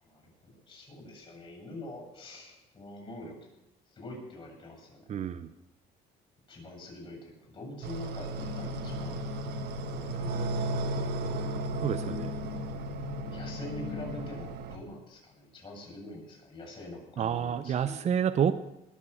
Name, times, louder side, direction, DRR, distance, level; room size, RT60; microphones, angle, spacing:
voice 1, 0.0-3.4 4.0-5.0 6.5-9.3 10.1-11.0 13.3-18.0, left 2 dB, 30° left, 0 dB, 7.7 m, -45 dB
voice 2, 5.1-5.5 11.8-12.3 17.2-18.5, right 8 dB, 40° right, 10 dB, 0.7 m, -29 dB
sound 1, 7.8-14.8, right 3 dB, 75° right, 1.4 m, -36 dB
Drum, 8.3-14.4, left 6 dB, 80° left, 1.8 m, -40 dB
20.5 x 7.4 x 7.0 m, 0.88 s
cardioid pair, 110°, 17 cm